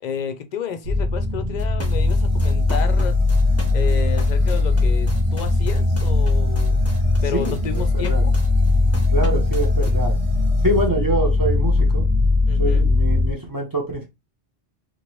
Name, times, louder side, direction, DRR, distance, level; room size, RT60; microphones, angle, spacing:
voice 1, 0.0-3.2 3.7-6.8 7.2-8.3 12.5-12.8, left 7 dB, 55° left, 0.6 m, -31 dB
sound 1, 0.8-13.3, left 2 dB, 90° right, 0.9 m, -19 dB
sound 2, 1.6-9.9, equal, 15° left, 0.7 m, -37 dB
sound 3, 1.9-10.9, right 3 dB, 50° right, 1.1 m, -45 dB
voice 2, 7.3-8.2 9.0-10.2 10.6-12.0 12.5-14.1, right 1 dB, 25° right, 0.6 m, -25 dB
2.9 x 2.6 x 3.0 m
omnidirectional pair, 1.0 m